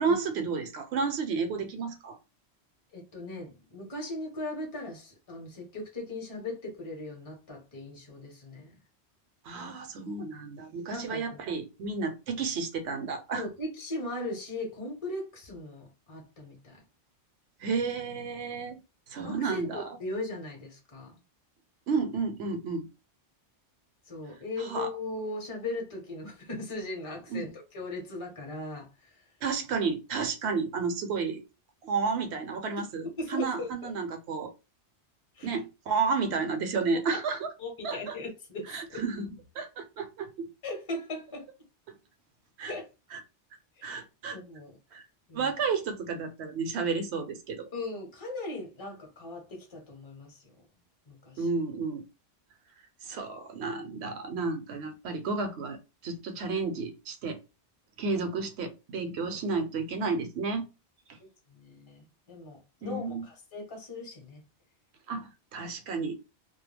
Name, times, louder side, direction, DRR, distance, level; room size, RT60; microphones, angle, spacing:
voice 1, 0.0-2.2 9.4-13.5 17.6-18.8 19.1-19.9 21.9-22.9 24.6-24.9 27.3-27.5 29.4-31.4 31.8-34.5 35.4-37.5 37.8-38.2 38.7-40.5 42.6-42.7 43.1-43.2 43.8-44.4 44.9-45.0 45.3-47.7 51.4-52.0 53.0-55.8 56.0-57.4 58.0-60.7 62.8-63.3 65.1-66.2, right 4 dB, 70° right, 0.9 m, -32 dB
voice 2, 2.9-8.7 10.9-11.4 13.3-16.8 19.2-21.1 24.1-29.1 33.2-33.9 35.4-35.5 37.6-39.0 40.6-41.5 42.7-42.9 43.8-44.0 44.3-44.8 45.3-45.5 47.7-50.6 51.1-51.5 61.5-64.4, left 2 dB, 30° left, 0.8 m, -38 dB
2.2 x 2.1 x 3.2 m
omnidirectional pair, 1.2 m